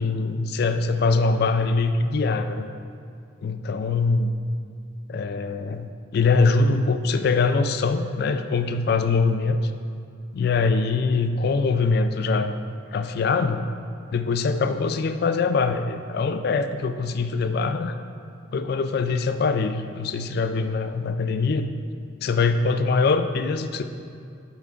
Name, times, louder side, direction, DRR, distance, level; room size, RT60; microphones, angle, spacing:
voice 1, 0.0-2.7 3.4-4.3 5.1-9.7 10.3-12.5 12.9-13.6 14.1-18.0 18.5-21.7 22.2-23.8, left 4 dB, 55° left, 9 dB, 0.3 m, -23 dB
7.2 x 4.4 x 3.7 m, 2.4 s
head